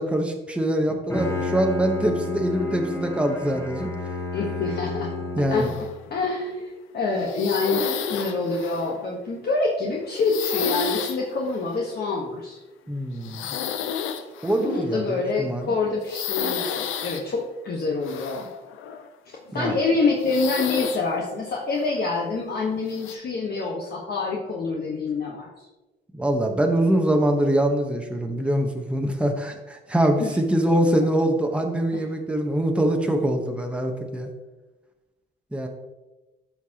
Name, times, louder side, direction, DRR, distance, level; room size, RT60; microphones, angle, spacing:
voice 1, 0.0-3.9 5.4-5.7 12.9-13.5 14.4-15.7 19.5-19.8 26.1-34.3 35.5-35.7, right 1 dB, 5° right, 3 dB, 1.0 m, -24 dB
Bowed string instrument, 0.9-6.0, left 2 dB, 15° left, 1.3 m, -31 dB
voice 2, 4.3-5.7 6.1-12.6 14.6-18.5 19.5-25.6 30.2-30.3 31.9-32.0, left 3 dB, 55° left, -2 dB, 1.2 m, -26 dB
sound 1, 5.6-6.2 6.6-6.8 7.2-9.0 10.1-11.2 11.5-11.8 13.2-14.8 16.0-17.2 18.0-19.1 19.5-19.6 20.2-21.0 21.5-21.9 22.9-23.1, left 8 dB, 85° left, 0.6 m, -31 dB
12.0 x 4.5 x 2.9 m, 1.1 s
cardioid pair, 90°, 20 cm